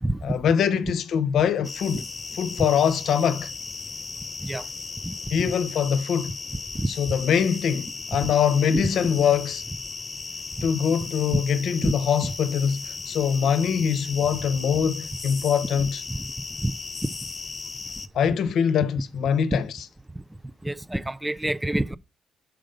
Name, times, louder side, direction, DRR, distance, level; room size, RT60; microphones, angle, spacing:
voice 1, 0.2-2.0 2.4-3.5 5.3-6.3 7.0-9.6 10.6-16.0 18.1-19.7, left 7 dB, 70° left, 0.8 m, -23 dB
sound 1, 1.6-18.1, left 4 dB, 30° left, 0.9 m, -36 dB
voice 2, 5.0-5.4 6.7-6.9 8.2-8.3 8.7-8.9 10.6-10.7 11.3-11.4 11.8-11.9 12.2-12.3 16.1-16.3 16.6-16.7 19.5-19.6 20.6-22.0, right 1 dB, 10° right, 0.4 m, -27 dB
6.4 x 5.0 x 5.1 m
cardioid pair, 90°, 0 cm